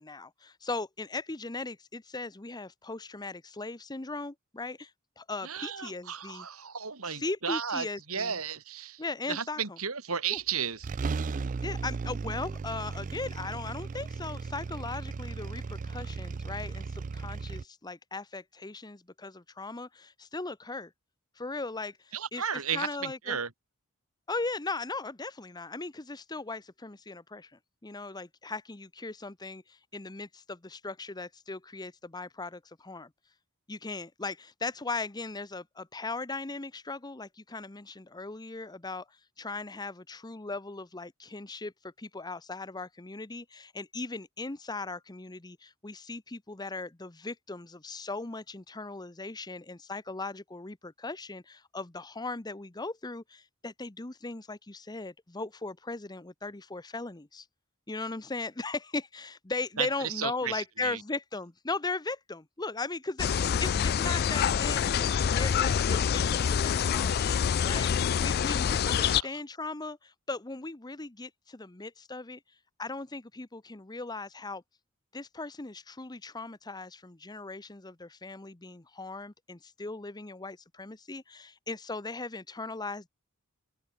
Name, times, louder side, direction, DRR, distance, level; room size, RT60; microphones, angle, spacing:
voice 1, 0.0-4.9 5.2-6.5 7.0-8.4 9.0-9.6 10.3-10.4 11.6-20.9 21.4-22.4 22.7-23.4 24.3-27.5 27.8-33.1 33.7-57.5 57.9-67.3 67.6-72.4 72.8-74.6 75.1-83.1, left 3 dB, 20° left, 0.9 m, -38 dB
voice 2, 5.4-9.0 9.3-10.9 22.1-23.5 59.8-61.0 69.0-69.4, right 7 dB, 80° right, 3.3 m, -34 dB
sound 1, 10.4-10.5 10.8-17.6, right 4 dB, 35° right, 0.4 m, -36 dB
sound 2, 63.2-69.2, left 7 dB, 45° left, 0.4 m, -26 dB
open air
head